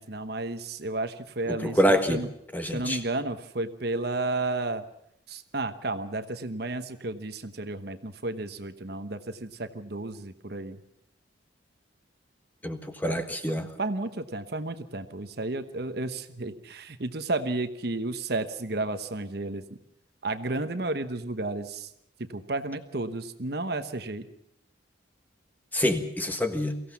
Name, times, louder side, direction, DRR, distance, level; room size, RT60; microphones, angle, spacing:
voice 1, 0.0-2.3 2.7-4.8 5.3-10.8 13.1-13.2 13.8-19.8 20.2-21.9 22.2-24.3, right 2 dB, 55° right, 9 dB, 1.1 m, -32 dB
voice 2, 1.5-2.2 2.5-3.0 12.6-13.7 25.7-26.8, equal, 10° left, 6 dB, 1.5 m, -26 dB
23.5 x 16.0 x 7.2 m, 0.77 s
head